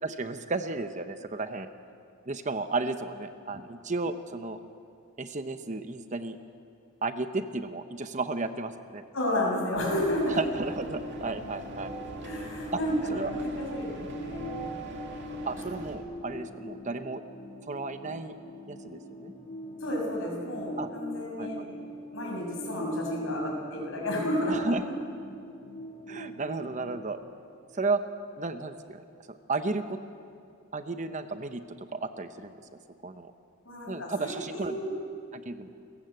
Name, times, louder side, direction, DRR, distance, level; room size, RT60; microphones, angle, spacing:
voice 1, 0.0-1.7 2.3-4.6 5.2-6.4 7.0-9.0 10.3-11.9 12.4-12.5 13.1-13.3 15.5-17.2 17.7-18.4 18.7-19.3 20.8-20.9 21.4-21.5 24.5-24.8 26.1-27.2 27.7-28.0 28.4-30.0 30.7-32.6 33.0-33.3 33.9-34.8 35.3-35.7, right 3 dB, 35° right, 9 dB, 0.9 m, -33 dB
voice 2, 9.1-10.4 12.2-14.6 19.8-21.6 22.1-24.7 33.6-34.9, left 1 dB, 70° left, -1 dB, 6.4 m, -31 dB
sound 1, 9.5-27.1, equal, 30° left, 1.5 m, -43 dB
sound 2, 9.8-16.0, right 1 dB, 55° right, 2.5 m, -41 dB
29.5 x 14.5 x 7.9 m, 2.4 s
head